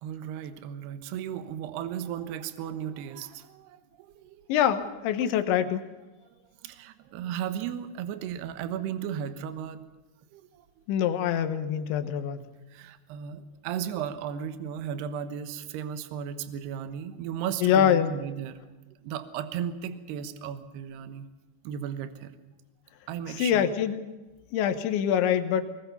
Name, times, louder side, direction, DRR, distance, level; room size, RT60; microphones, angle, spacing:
voice 1, 0.0-4.4 6.2-6.3 6.6-9.8 10.3-10.7 12.7-18.6 19.0-21.3 21.6-22.4 23.1-23.7, right 9 dB, 70° right, 11 dB, 3.0 m, -35 dB
voice 2, 4.5-5.8 10.9-12.5 17.6-18.1 23.3-24.1 24.5-25.6, left 9 dB, 75° left, 8 dB, 3.4 m, -25 dB
21.0 x 20.5 x 7.0 m, 1.1 s
omnidirectional pair, 5.5 m